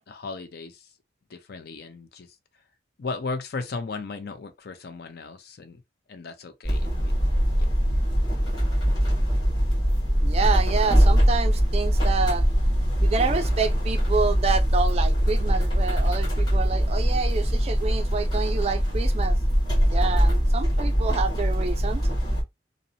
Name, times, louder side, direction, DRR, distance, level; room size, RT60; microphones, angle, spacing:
voice 1, 0.1-0.8 1.3-2.3 3.0-5.8 6.1-7.1, left 4 dB, 60° left, 0.5 m, -36 dB
sound 1, 6.6-22.4, equal, 25° left, 1.0 m, -22 dB
voice 2, 10.2-12.5 13.0-19.4 19.9-22.0, right 4 dB, 35° right, 0.3 m, -28 dB
2.6 x 2.0 x 2.6 m
head